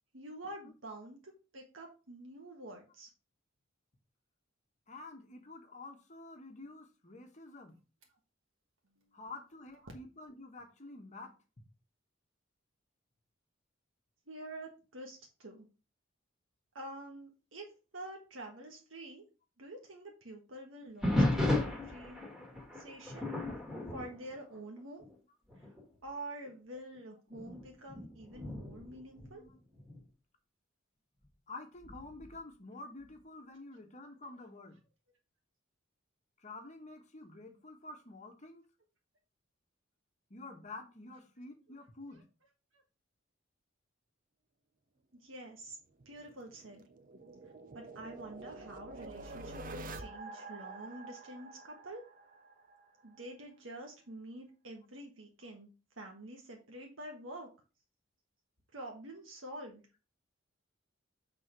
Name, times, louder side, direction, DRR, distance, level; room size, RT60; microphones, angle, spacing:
voice 1, 0.1-3.1 14.3-15.7 16.7-19.2 19.6-22.2 22.7-23.3 23.9-25.0 25.6-25.7 26.0-29.4 42.1-42.2 45.1-45.8 46.0-46.8 47.7-52.0 53.0-55.7 56.0-57.5 58.7-59.8, right 1 dB, 75° right, 1.5 m, -47 dB
voice 2, 4.9-7.8 9.1-11.3 28.8-28.9 29.3-29.5 31.5-34.8 36.4-38.6 40.3-42.3, left 2 dB, 40° left, 1.2 m, -49 dB
sound 1, 21.0-25.2 25.5-25.8 26.5-26.6 27.3-30.0 31.8-32.3, left 1 dB, ahead, 1.7 m, -35 dB
sound 2, 46.0-52.8, right 2 dB, 45° right, 0.7 m, -47 dB
6.3 x 3.8 x 5.1 m
head